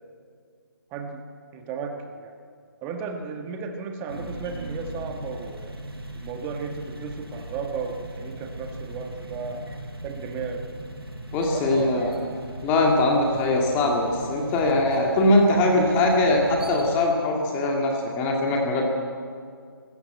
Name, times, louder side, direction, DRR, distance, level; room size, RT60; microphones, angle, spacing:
voice 1, 0.9-1.2 1.5-2.3 2.8-5.8 6.2-9.7 10.0-10.9 11.5-12.4, right 5 dB, 15° right, 4 dB, 1.5 m, -34 dB
sound 1, 4.1-17.0, right 1 dB, 90° right, 6.2 m, -38 dB
voice 2, 11.3-12.1 12.6-18.8, left 2 dB, 15° left, 0 dB, 2.2 m, -21 dB
23.5 x 16.0 x 7.9 m, 2.1 s
figure-of-eight pair, 155°, 12 cm